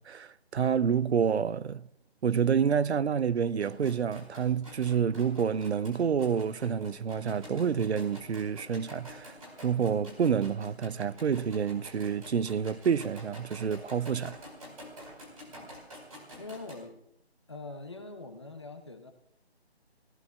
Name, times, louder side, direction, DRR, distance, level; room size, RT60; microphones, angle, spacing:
voice 1, 0.0-1.9 2.2-9.3 9.6-14.4, right 7 dB, 80° right, 0.6 m, -28 dB
sound 1, 3.5-16.7, equal, 35° right, 4.8 m, -49 dB
voice 2, 16.4-17.0 17.5-19.1, left 3 dB, 25° left, 1.0 m, -43 dB
29.5 x 17.5 x 2.4 m
hypercardioid pair, 180°, 33 cm